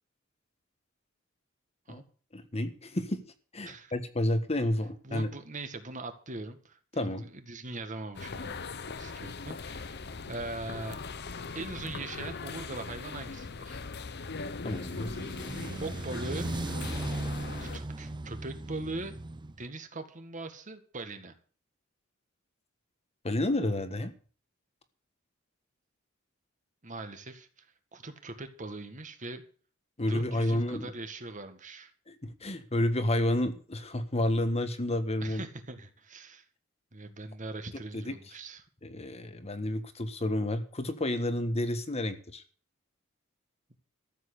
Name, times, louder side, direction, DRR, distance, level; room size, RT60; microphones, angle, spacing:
voice 1, 2.3-3.2 3.5-5.3 6.9-7.2 14.6-15.1 23.2-24.1 30.0-30.9 32.1-35.4 37.9-38.1 38.8-42.4, left 1 dB, 30° left, 1.4 m, -30 dB
voice 2, 5.0-8.7 9.0-11.0 11.5-13.8 15.8-16.5 17.6-19.1 19.6-21.3 26.8-27.7 27.9-29.4 30.1-31.9 35.2-36.4 36.9-38.7, right 2 dB, 40° right, 1.9 m, -41 dB
sound 1, 8.1-17.8, left 4 dB, 55° left, 0.9 m, -40 dB
sound 2, 14.7-19.6, right 2 dB, 25° right, 0.5 m, -37 dB
14.0 x 7.6 x 8.3 m
head